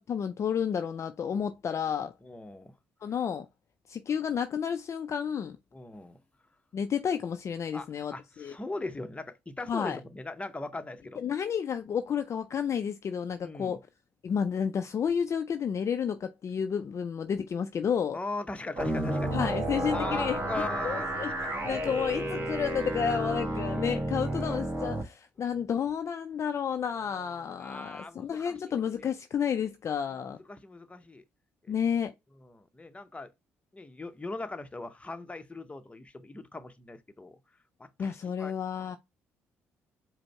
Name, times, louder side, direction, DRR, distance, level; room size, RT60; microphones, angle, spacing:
voice 1, 0.0-2.1 3.0-3.5 3.9-5.6 6.7-8.5 9.7-10.0 11.2-13.8 14.2-18.2 19.3-20.4 20.8-21.3 21.6-30.4 31.7-32.1 38.0-39.0, left 7 dB, 45° left, 0.4 m, -31 dB
voice 2, 2.2-2.7 5.7-6.2 7.7-11.2 13.4-13.8 18.1-19.6 19.9-22.2 23.6-23.7 24.3-24.6 27.0-28.7 30.1-31.2 31.6-31.7 32.4-33.3 33.7-37.4 37.8-38.5, left 2 dB, 20° left, 0.8 m, -40 dB
sound 1, 18.8-25.0, right 1 dB, 30° right, 1.7 m, -31 dB
5.0 x 2.1 x 4.6 m
hypercardioid pair, 50°, 7 cm